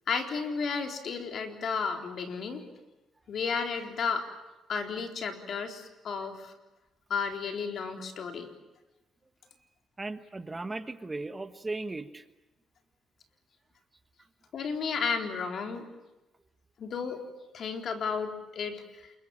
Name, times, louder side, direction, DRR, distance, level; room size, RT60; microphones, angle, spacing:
voice 1, 0.1-2.6 3.3-4.3 4.7-6.5 7.1-8.5 14.5-15.8 16.8-17.2 17.5-19.1, left 5 dB, 60° left, 4 dB, 4.0 m, -33 dB
voice 2, 10.0-12.2, right 2 dB, 20° right, 10 dB, 1.4 m, -37 dB
27.5 x 23.0 x 8.9 m, 1.0 s
cardioid pair, 90°, 0 cm